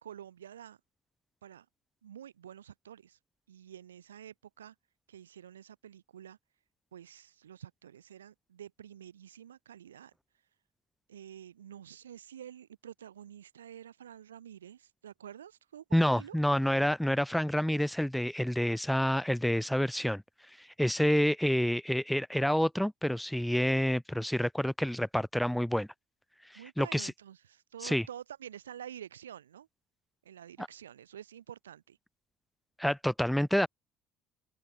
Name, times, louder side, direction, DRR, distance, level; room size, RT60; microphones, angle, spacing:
voice 1, 0.0-0.8 1.4-1.7 2.0-3.2 3.5-4.8 5.1-6.4 6.9-10.1 11.1-16.4 26.5-29.7 30.3-32.0, right 10 dB, 75° right, 1.7 m, -49 dB
voice 2, 15.9-20.2 20.6-25.9 26.8-27.1 27.8-28.0 30.6-30.7 32.8-33.7, equal, ahead, 0.9 m, -28 dB
open air
figure-of-eight pair, 60°, 0 cm